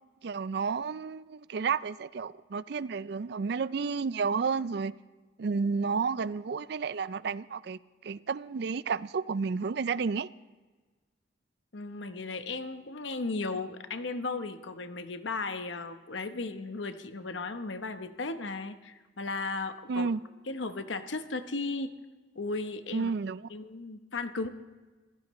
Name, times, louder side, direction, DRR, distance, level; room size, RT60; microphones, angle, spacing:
voice 1, 0.2-4.9 5.4-10.3 19.9-20.2 22.9-23.5, right 5 dB, 60° right, 0.4 m, -31 dB
voice 2, 11.7-20.1 20.5-21.9 22.3-23.1 23.5-24.5, left 3 dB, 80° left, 1.0 m, -35 dB
27.5 x 15.5 x 3.1 m
head